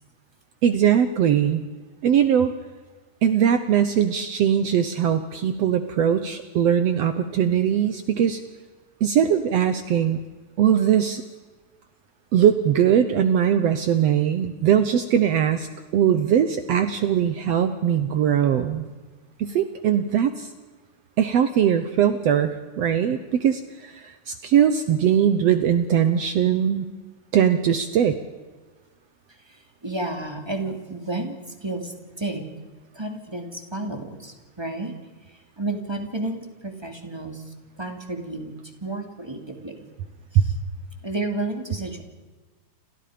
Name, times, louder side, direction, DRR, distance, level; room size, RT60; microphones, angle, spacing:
voice 1, 0.6-1.6 2.0-2.5 3.2-8.4 9.0-10.2 10.6-11.2 12.3-15.7 15.9-18.9 19.4-20.5 21.2-26.9 27.3-28.2 40.4-40.5, right 9 dB, 65° right, 9 dB, 1.9 m, -20 dB
voice 2, 29.4-32.5 32.9-35.0 35.3-39.9 40.3-40.5 41.0-42.0, right 2 dB, 10° right, 4 dB, 2.4 m, -32 dB
29.5 x 27.0 x 5.1 m, 1.3 s
omnidirectional pair, 3.5 m